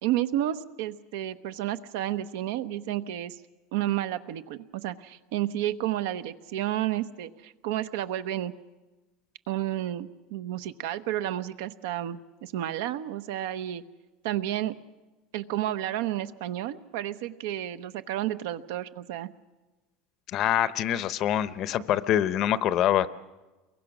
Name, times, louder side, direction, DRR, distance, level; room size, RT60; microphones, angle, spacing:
voice 1, 0.0-3.4 3.7-8.5 9.5-13.8 14.2-14.7 15.3-19.3, right 12 dB, 75° right, 11 dB, 1.0 m, -31 dB
voice 2, 20.3-23.1, left 11 dB, 35° left, 15 dB, 0.7 m, -25 dB
29.0 x 23.0 x 6.1 m, 1.1 s
cardioid pair, 175°, 0 cm